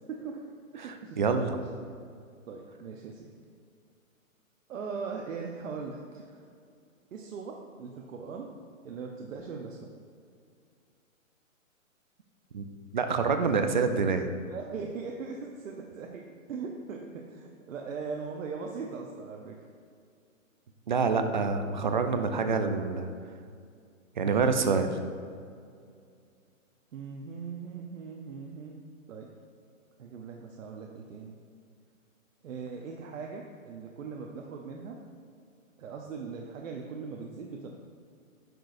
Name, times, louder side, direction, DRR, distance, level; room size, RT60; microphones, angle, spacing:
voice 1, 0.1-0.4 0.8-1.2 2.5-3.3 4.7-6.4 7.1-8.5 8.8-9.9 14.5-19.7 26.9-28.8 29.1-29.3 30.0-31.4 32.4-35.0 35.8-37.7, right 5 dB, 70° right, 1 dB, 0.8 m, -40 dB
voice 2, 0.8-1.6 12.5-12.6 12.9-14.3 20.9-23.1 24.2-25.0, right 5 dB, 35° right, 7 dB, 0.4 m, -27 dB
10.0 x 6.2 x 2.5 m, 2.3 s
hypercardioid pair, 155°, 41 cm